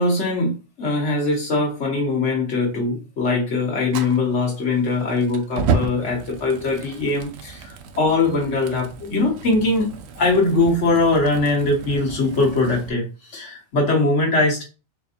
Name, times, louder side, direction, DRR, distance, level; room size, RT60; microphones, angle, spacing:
voice 1, 0.0-9.9 10.1-14.6, left 3 dB, 80° left, -1 dB, 1.6 m, -21 dB
Fire, 3.9-12.9, right 5 dB, 70° right, 0.8 m, -32 dB
4.5 x 2.7 x 2.5 m, 0.31 s
omnidirectional pair, 1.2 m